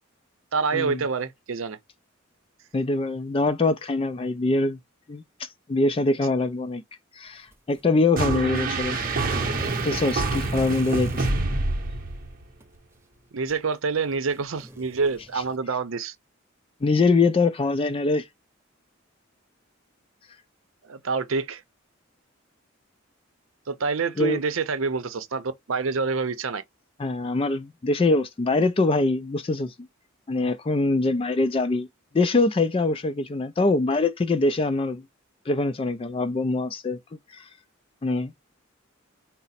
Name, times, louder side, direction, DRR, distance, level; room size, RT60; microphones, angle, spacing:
voice 1, 0.5-1.8 13.3-16.1 20.8-21.6 23.7-26.6, right 4 dB, 80° right, 0.6 m, -27 dB
voice 2, 2.7-4.8 5.1-6.8 7.2-9.0 9.8-11.3 16.8-18.2 24.2-24.4 27.0-29.7 30.3-31.9 32.1-35.0 35.5-37.0 37.3-37.5 38.0-38.3, left 3 dB, 25° left, 0.3 m, -23 dB
sound 1, 7.5-7.9 8.4-11.4 12.5-12.6 13.5-13.6 14.1-15.6, equal, 15° right, 0.8 m, -40 dB
sound 2, 8.2-12.4, right 3 dB, 45° right, 0.8 m, -26 dB
4.9 x 2.0 x 4.1 m
head